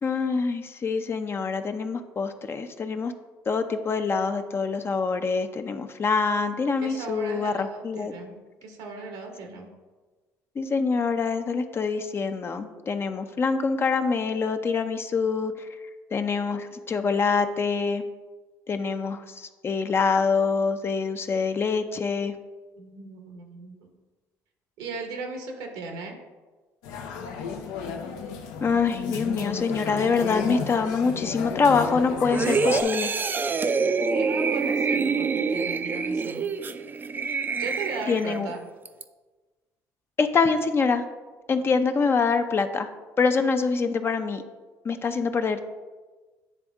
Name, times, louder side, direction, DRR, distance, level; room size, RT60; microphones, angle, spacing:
voice 1, 0.0-3.1 3.5-8.1 10.6-15.7 16.1-18.0 18.7-22.3 28.6-33.1 38.1-38.5 40.2-41.0 41.5-42.9 43.2-44.4 44.8-45.6, left 5 dB, 35° left, 8 dB, 0.5 m, -25 dB
voice 2, 6.8-9.7 22.8-23.9 24.8-26.2 31.0-31.1 34.2-36.5 37.6-38.6, right 4 dB, 85° right, 3 dB, 1.1 m, -37 dB
sound 1, 26.8-32.8, left 6 dB, 85° left, 0.6 m, -33 dB
sound 2, 32.3-38.4 38.9-39.0, right 5 dB, 30° right, 0.4 m, -26 dB
9.4 x 3.4 x 3.5 m, 1.3 s
supercardioid pair, 85°, 7 cm